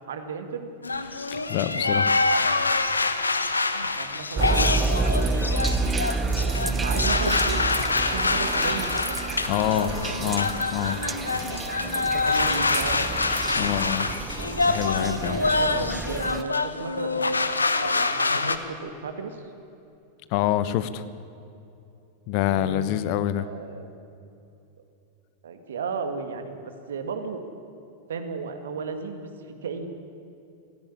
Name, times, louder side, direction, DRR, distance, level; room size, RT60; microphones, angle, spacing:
voice 1, 0.1-0.7 4.0-5.6 6.8-9.2 9.7-10.4 12.0-13.2 15.3-19.5 22.5-22.9 23.4-23.9 25.4-27.4 28.1-29.9, right 5 dB, 65° right, 7 dB, 2.0 m, -35 dB
sound 1, 0.8-18.6, left 3 dB, 80° left, 1.0 m, -26 dB
voice 2, 1.1-2.1 9.5-9.9 10.2-11.0 13.6-14.1 14.6-15.4 20.3-21.0 22.3-23.5, left 12 dB, 45° left, 14 dB, 0.9 m, -26 dB
sound 2, 4.4-16.4, right 4 dB, 15° right, 0.5 m, -29 dB
17.0 x 15.5 x 9.9 m, 2.7 s
figure-of-eight pair, 90°, 0 cm